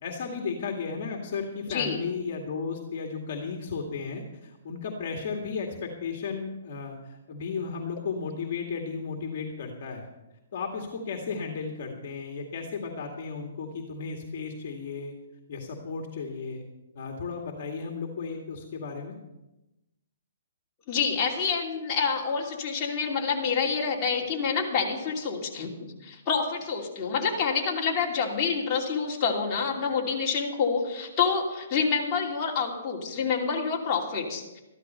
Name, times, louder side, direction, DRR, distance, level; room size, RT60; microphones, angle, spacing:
voice 1, 0.0-10.1 10.5-15.1 15.5-16.6 17.0-19.2, left 5 dB, 45° left, 2 dB, 2.1 m, -34 dB
voice 2, 1.7-2.0 20.9-25.7 26.0-34.6, left 5 dB, 25° left, -4 dB, 3.0 m, -27 dB
14.0 x 12.5 x 5.7 m, 0.99 s
hypercardioid pair, 160°, 0 cm